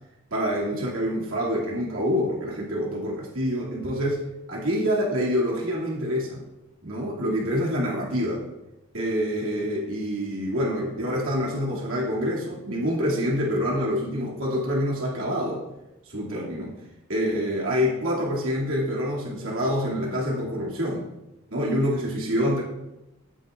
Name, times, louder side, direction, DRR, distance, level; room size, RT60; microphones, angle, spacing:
voice 1, 0.3-4.2 4.5-6.4 6.8-8.4 8.9-15.6 16.0-16.7 17.1-21.1 21.5-22.6, equal, 75° right, -4 dB, 2.6 m, -26 dB
16.5 x 8.1 x 2.5 m, 0.94 s
head